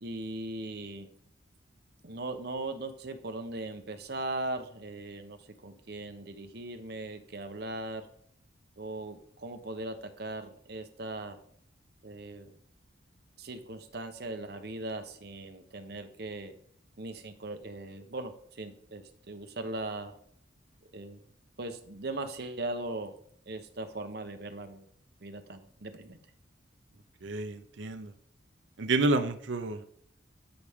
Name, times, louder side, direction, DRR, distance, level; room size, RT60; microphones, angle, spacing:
voice 1, 0.0-1.1 2.0-8.1 8.8-11.4 12.0-12.5 13.4-16.5 17.0-20.2 20.9-21.2 21.6-23.1 23.5-24.9 25.2-26.2, right 2 dB, 55° right, 7 dB, 0.9 m, -39 dB
voice 2, 27.2-28.1 28.8-29.8, right 2 dB, 75° right, 8 dB, 0.6 m, -29 dB
13.0 x 4.8 x 3.6 m, 0.64 s
head